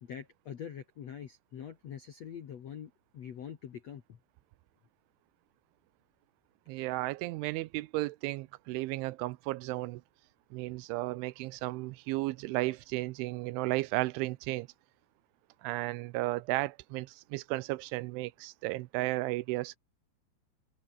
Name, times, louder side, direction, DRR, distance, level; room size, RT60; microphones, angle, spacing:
voice 1, 0.0-4.2, left 8 dB, 65° left, 1.6 m, -44 dB
voice 2, 6.7-10.0 10.5-14.7 15.6-19.8, right 20 dB, 80° right, 3.0 m, -34 dB
omnidirectional pair, 5.5 m